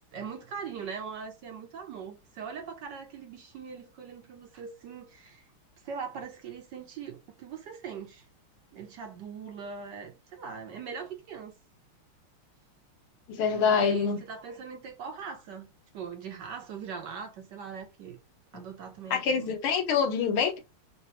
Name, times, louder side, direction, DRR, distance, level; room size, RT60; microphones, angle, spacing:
voice 1, 0.1-5.4 5.8-8.3 8.7-11.6 13.6-15.7 15.9-18.2 18.5-19.5, right 6 dB, 65° right, 1.1 m, -41 dB
voice 2, 13.3-14.2 19.1-20.6, left 6 dB, 80° left, 1.8 m, -25 dB
3.9 x 2.8 x 4.2 m
omnidirectional pair, 2.4 m